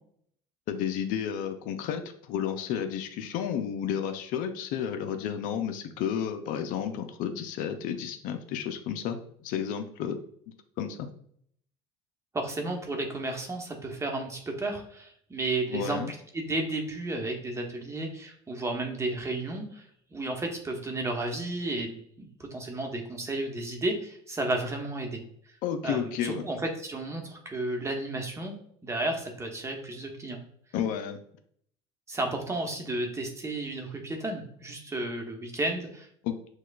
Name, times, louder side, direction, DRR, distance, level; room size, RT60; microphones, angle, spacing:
voice 1, 0.7-10.2 10.8-11.1 15.7-16.1 25.6-26.4 30.7-31.2 36.2-36.4, left 8 dB, 65° left, 7 dB, 0.5 m, -32 dB
voice 2, 12.3-19.9 20.1-25.2 25.8-28.5 28.8-30.4 32.1-36.1, right 2 dB, 20° right, 3 dB, 1.0 m, -33 dB
6.4 x 2.3 x 2.4 m, 0.64 s
supercardioid pair, 90°, 15 cm